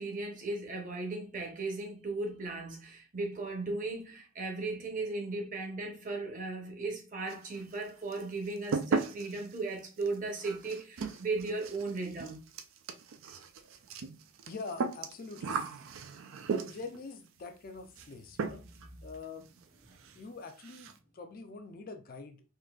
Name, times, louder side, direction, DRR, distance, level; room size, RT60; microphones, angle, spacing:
voice 1, 0.0-12.5 18.8-19.0 19.9-20.1, right 3 dB, 40° right, 0.8 m, -37 dB
sound 1, 7.3-7.8 8.1-17.0 18.0-18.1 18.4-18.9 19.1-19.2 19.6-19.7 20.0-20.2 20.5-21.0, right 4 dB, 80° right, 0.4 m, -37 dB
voice 2, 14.5-15.6 16.6-18.6 19.0-19.4 20.2-22.4, left 4 dB, 45° left, 0.4 m, -44 dB
3.8 x 2.6 x 2.3 m
head